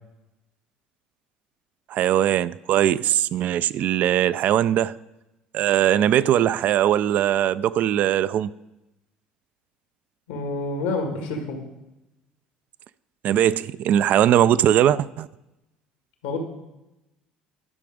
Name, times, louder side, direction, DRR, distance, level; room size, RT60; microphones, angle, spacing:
voice 1, 1.9-5.0 5.5-8.5 13.2-15.3, right 11 dB, 55° right, 0.3 m, -20 dB
voice 2, 10.3-11.6 16.2-16.4, left 3 dB, 85° left, 1.8 m, -28 dB
11.0 x 6.0 x 5.0 m
hypercardioid pair, 70°, 3 cm